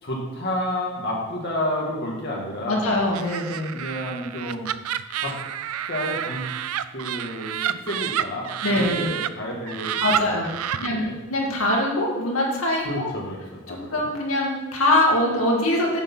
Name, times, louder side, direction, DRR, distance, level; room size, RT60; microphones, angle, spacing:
voice 1, 0.0-3.0 3.7-4.7 5.2-5.4 5.9-6.5 6.9-7.6 7.8-10.4 10.7-11.2 12.8-13.4 13.6-14.1, left 1 dB, 50° left, -3 dB, 2.1 m, -30 dB
voice 2, 2.7-3.8 8.6-9.1 10.0-10.5 10.8-11.0 11.3-13.1 13.7-16.0, left 1 dB, 75° left, -1 dB, 2.1 m, -23 dB
Laughter, 3.1-9.3 9.7-10.9, right 10 dB, 80° right, 0.4 m, -29 dB
7.2 x 6.7 x 5.7 m, 1.1 s
head